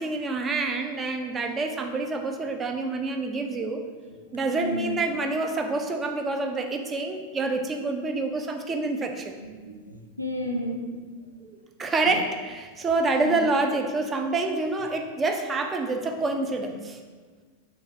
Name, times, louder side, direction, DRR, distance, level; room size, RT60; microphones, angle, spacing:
voice 1, 0.0-3.8 4.3-9.3 11.4-17.0, right 3 dB, 20° right, 4 dB, 0.3 m, -27 dB
voice 2, 4.3-5.0 9.4-10.9 13.2-13.4, equal, 85° left, 2 dB, 0.4 m, -32 dB
3.1 x 2.4 x 3.9 m, 1.5 s
figure-of-eight pair, 90°, 0 cm